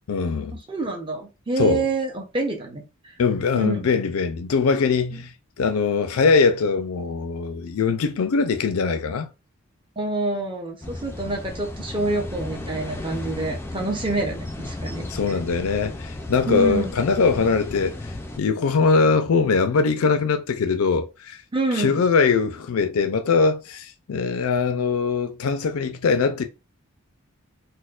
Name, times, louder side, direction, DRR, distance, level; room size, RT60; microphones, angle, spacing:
voice 1, 0.0-0.6 1.6-1.9 3.2-9.3 15.1-21.4 21.7-26.4, left 5 dB, 85° left, 0.4 m, -22 dB
voice 2, 0.7-2.8 3.5-3.9 5.1-5.2 10.0-15.1 16.5-16.9 21.5-22.0, right 3 dB, 25° right, 0.7 m, -27 dB
sound 1, 10.8-18.4, left 1 dB, 10° left, 0.3 m, -34 dB
4.2 x 2.1 x 2.4 m
head